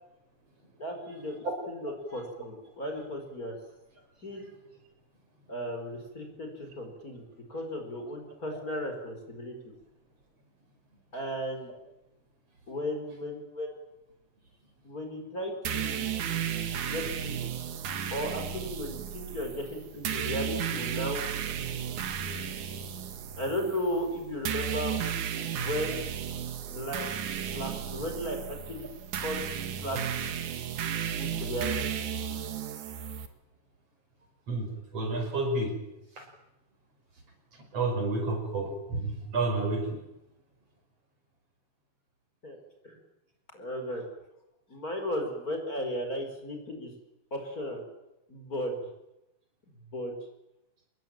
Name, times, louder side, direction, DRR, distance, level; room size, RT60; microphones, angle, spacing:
voice 1, 0.8-3.6 4.2-4.5 5.5-9.7 11.1-11.7 12.7-13.7 14.8-16.2 16.8-17.4 18.1-21.2 21.6-21.9 23.4-25.0 25.4-26.1 26.7-27.1 27.5-28.9 29.2-29.4 29.8-30.3 31.1-31.8 32.1-32.4 42.4-43.0 43.5-44.1 44.7-46.9 47.3-47.9 48.3-48.8 49.9-50.1, equal, 25° left, 3 dB, 5.2 m, -35 dB
sound 1, 15.7-33.3, right 8 dB, 75° right, 3.2 m, -34 dB
voice 2, 34.5-35.7 36.2-36.3 37.7-40.0, right 2 dB, 50° right, 4 dB, 6.4 m, -30 dB
27.0 x 21.5 x 9.1 m, 0.90 s
omnidirectional pair, 3.6 m